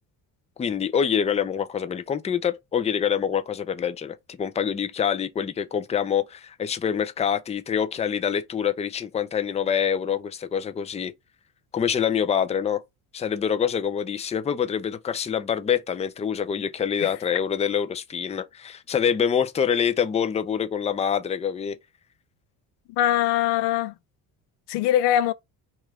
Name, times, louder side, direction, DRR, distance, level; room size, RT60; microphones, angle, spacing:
voice 1, 0.6-11.1 11.7-12.8 13.1-21.8, left 8 dB, 15° left, 0.4 m, -25 dB
voice 2, 22.9-23.9 24.7-25.3, left 12 dB, 65° left, 0.5 m, -22 dB
2.9 x 2.5 x 4.0 m
supercardioid pair, 70°, 45 cm